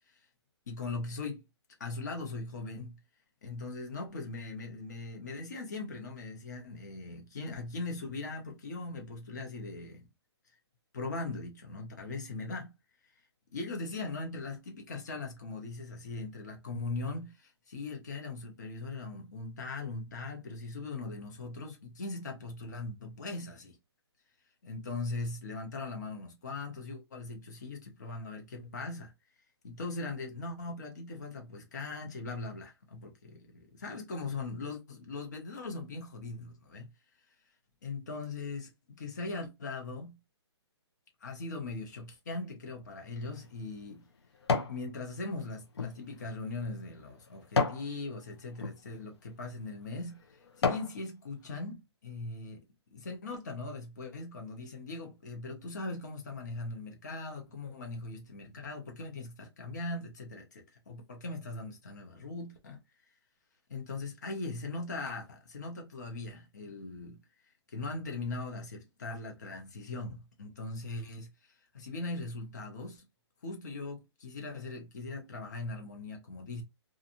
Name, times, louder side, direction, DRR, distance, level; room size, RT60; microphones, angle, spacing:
voice 1, 0.7-1.4 1.8-2.9 3.4-10.0 10.9-12.7 13.5-23.8 24.6-29.1 29.6-36.9 37.8-38.7 39.0-40.1 41.2-44.0 44.7-52.6 52.9-62.8 63.7-67.2 67.7-71.3 71.7-73.0 73.4-76.6, left 3 dB, 40° left, 0.9 m, -40 dB
sound 1, 43.0-44.8 45.3-47.9 48.5-48.7 49.4-49.6 50.1-51.0 51.4-51.5, left 4 dB, 65° left, 0.8 m, -33 dB
2.6 x 2.4 x 2.7 m
hypercardioid pair, 175°, 14 cm